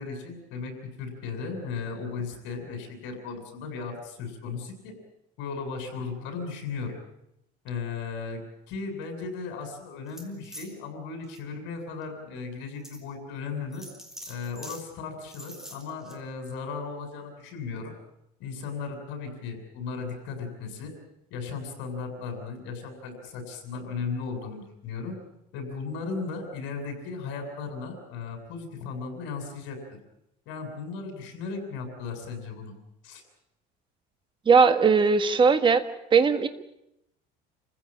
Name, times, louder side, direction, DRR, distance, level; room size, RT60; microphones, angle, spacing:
voice 1, 0.0-5.0 5.4-6.9 7.6-8.4 8.7-13.9 14.3-18.0 18.4-20.9 21.3-25.2 25.5-29.8 30.5-32.7 33.0-33.2, left 4 dB, 70° left, 5 dB, 7.5 m, -36 dB
sound 1, 10.1-10.7 11.2-11.4 12.0-12.1 12.8-13.0 13.7-14.8 15.2-16.1, equal, ahead, 3.7 m, -44 dB
voice 2, 34.4-35.8 36.1-36.5, right 5 dB, 25° right, 9 dB, 1.6 m, -19 dB
28.5 x 15.5 x 8.8 m, 0.83 s
cardioid pair, 140°, 20 cm